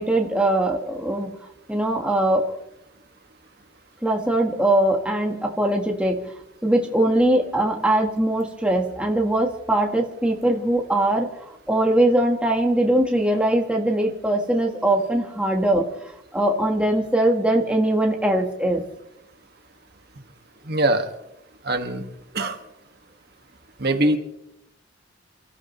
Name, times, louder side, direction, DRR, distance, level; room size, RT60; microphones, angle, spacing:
voice 1, 0.0-1.4 1.7-2.5 4.0-6.2 6.6-18.8, right 1 dB, 5° right, 1 dB, 1.4 m, -21 dB
voice 2, 20.6-21.1 21.6-22.0 22.3-22.6 23.8-24.2, right 1 dB, 55° right, 4 dB, 1.8 m, -22 dB
29.0 x 14.0 x 3.1 m, 0.83 s
head